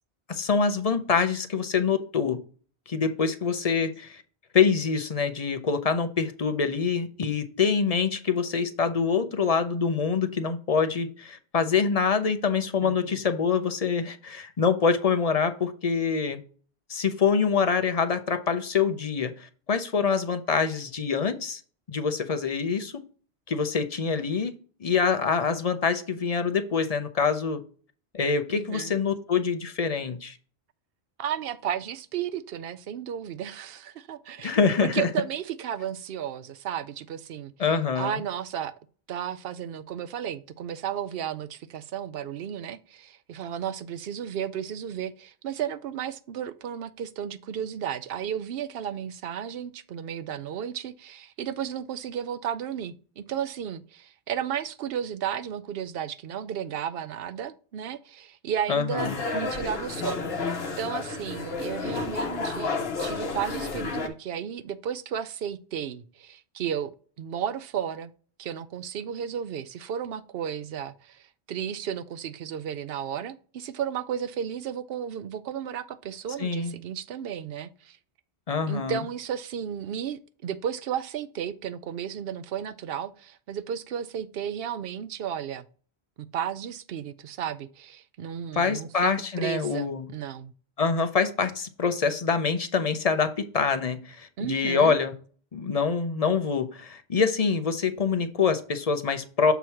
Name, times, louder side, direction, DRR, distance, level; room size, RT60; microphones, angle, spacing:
voice 1, 0.3-2.4 2.9-4.2 4.5-16.4 16.9-21.6 21.9-23.0 23.5-24.5 24.8-27.6 28.1-30.4 34.4-35.1 37.6-38.2 58.7-59.2 76.4-76.7 78.5-79.0 88.6-90.1 90.8-95.1 95.5-99.5, left 5 dB, 40° left, 0.7 m, -25 dB
voice 2, 12.8-13.2 28.5-28.9 31.2-37.5 38.0-38.7 39.1-68.1 68.4-78.0 78.7-85.6 86.2-89.1 89.4-90.5 94.4-95.0, right 9 dB, 65° right, 0.8 m, -33 dB
sound 1, 59.0-64.1, left 3 dB, 65° left, 1.1 m, -31 dB
7.0 x 3.1 x 5.6 m
omnidirectional pair, 1.1 m